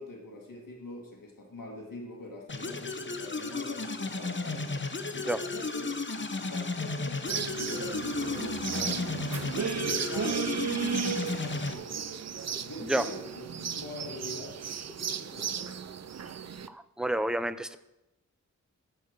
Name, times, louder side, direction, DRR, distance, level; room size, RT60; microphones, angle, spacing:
voice 1, 0.0-5.9 6.4-7.2 7.5-9.3 9.8-12.2 12.6-14.6 14.9-15.8, left 1 dB, 90° left, 0 dB, 1.8 m, -43 dB
sound 1, 2.5-11.7, left 3 dB, 35° left, 0.8 m, -34 dB
sound 2, 7.3-16.7, right 7 dB, 55° right, 0.5 m, -35 dB
voice 2, 16.7-17.8, right 1 dB, ahead, 12 dB, 0.5 m, -29 dB
13.5 x 4.6 x 6.5 m, 0.95 s
wide cardioid pair, 90°, 32 cm